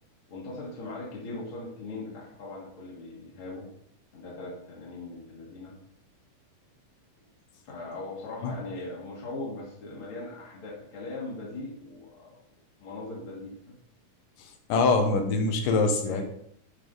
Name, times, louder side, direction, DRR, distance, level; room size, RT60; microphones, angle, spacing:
voice 1, 0.3-3.7 4.1-5.7 7.6-12.3 12.8-13.7 16.1-16.2, left 2 dB, 45° left, -5 dB, 2.2 m, -40 dB
voice 2, 14.7-16.2, left 3 dB, 75° left, 5 dB, 2.7 m, -24 dB
10.0 x 5.6 x 3.9 m, 0.69 s
omnidirectional pair, 3.9 m